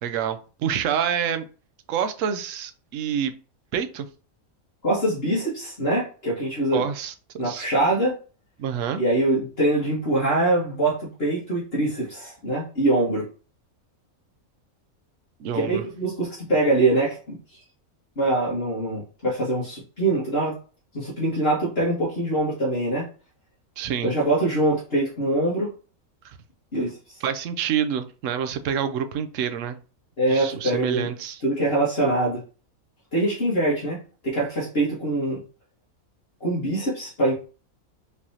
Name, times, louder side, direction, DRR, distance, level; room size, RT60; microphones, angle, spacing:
voice 1, 0.0-1.5 1.9-3.3 3.7-4.1 6.7-7.1 7.4-7.7 8.6-9.0 15.4-15.8 23.8-24.1 26.2-26.4 27.2-29.8 30.3-31.4, right 8 dB, 65° right, 9 dB, 0.9 m, -27 dB
voice 2, 4.8-6.9 7.4-8.2 9.0-13.3 15.5-17.4 18.2-20.6 20.9-23.1 24.0-25.7 26.7-27.2 30.2-31.1 31.4-32.4 33.1-34.0 34.2-35.4 36.4-37.3, right 2 dB, 45° left, -7 dB, 1.8 m, -23 dB
5.0 x 3.4 x 2.8 m, 0.35 s
omnidirectional pair, 1.6 m